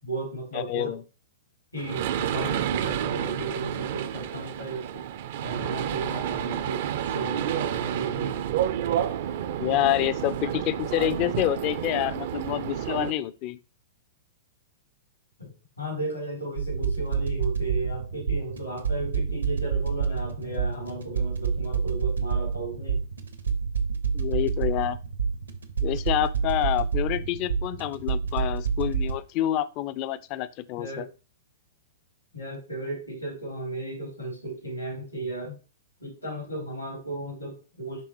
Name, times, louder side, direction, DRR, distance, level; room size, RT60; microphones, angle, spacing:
voice 1, 0.0-0.9 1.7-5.0 5.4-8.4 15.4-15.5 15.8-23.0 30.8-31.1 32.3-35.5 36.0-38.0, right 2 dB, 90° left, 3.1 m, -35 dB
voice 2, 0.5-1.0 9.6-13.6 24.1-25.0 25.8-31.0, left 13 dB, 40° left, 0.5 m, -27 dB
sound 1, 1.8-13.1, right 10 dB, 55° right, 0.5 m, -30 dB
sound 2, 16.6-29.1, right 6 dB, 80° right, 1.0 m, -28 dB
9.9 x 3.4 x 3.0 m
figure-of-eight pair, 110°, 0 cm